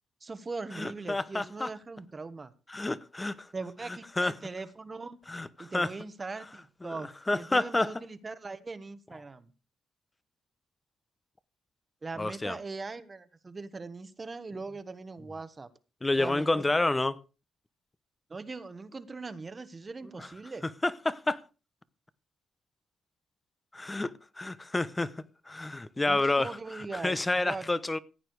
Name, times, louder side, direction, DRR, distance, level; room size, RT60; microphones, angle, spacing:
voice 1, 0.2-2.5 3.5-5.2 5.6-9.5 12.0-15.7 16.1-16.6 18.3-20.6 26.1-27.7, right 3 dB, 30° right, 1.3 m, -40 dB
voice 2, 0.8-1.7 2.7-3.5 4.2-4.3 5.3-5.9 6.8-6.9 7.3-7.9 12.2-12.6 16.0-17.2 20.2-20.3 20.8-21.4 23.7-25.1 25.5-26.5 26.9-28.0, left 2 dB, 15° left, 1.0 m, -29 dB
15.5 x 8.9 x 4.8 m
cardioid pair, 90°, 0 cm